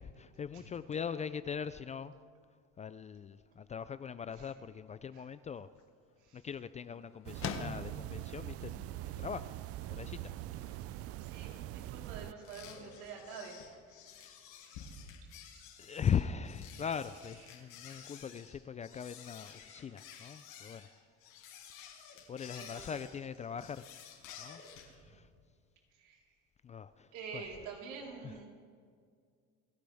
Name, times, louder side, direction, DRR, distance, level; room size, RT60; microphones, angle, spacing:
voice 1, 0.0-2.1 2.8-5.7 6.3-9.5 9.9-10.3 15.8-20.9 22.3-23.9 24.4-24.6 24.9-25.3 26.6-27.4 28.2-28.4, left 7 dB, 25° left, 14 dB, 0.4 m, -40 dB
sound 1, 5.4-15.1, left 6 dB, 45° left, 1.4 m, -50 dB
voice 2, 6.2-6.5 6.9-7.0 11.2-14.4 16.8-16.9 21.6-21.7 22.5-23.0 25.9-26.4 27.1-28.5, right 5 dB, 70° right, -2 dB, 4.1 m, -48 dB
sound 2, 7.3-12.3, right 14 dB, 50° right, 0.5 m, -43 dB
sound 3, 12.4-24.9, left 7 dB, 75° left, 5.2 m, -52 dB
29.5 x 11.5 x 3.5 m, 2.1 s
supercardioid pair, 110°, 31 cm